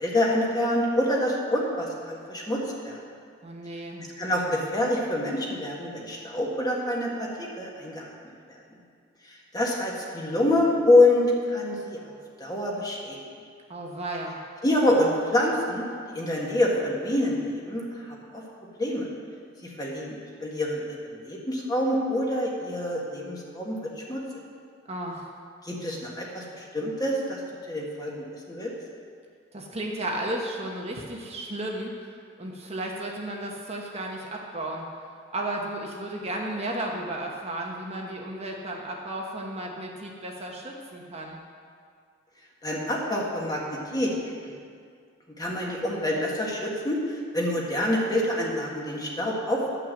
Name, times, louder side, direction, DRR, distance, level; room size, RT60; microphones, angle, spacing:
voice 1, 0.0-3.0 4.2-8.1 8.5-8.6 9.3-12.0 12.4-13.2 14.6-18.4 18.8-19.1 19.6-24.2 25.6-27.4 27.7-28.1 28.5-28.7 42.6-44.1 44.4-44.5 45.4-49.7, left 1 dB, 20° left, -3 dB, 1.6 m, -26 dB
voice 2, 3.4-4.0 13.7-14.4 24.9-25.3 29.5-32.1 32.4-34.9 35.3-41.4, right 1 dB, 30° right, -1 dB, 1.1 m, -34 dB
11.0 x 5.9 x 7.6 m, 2.2 s
head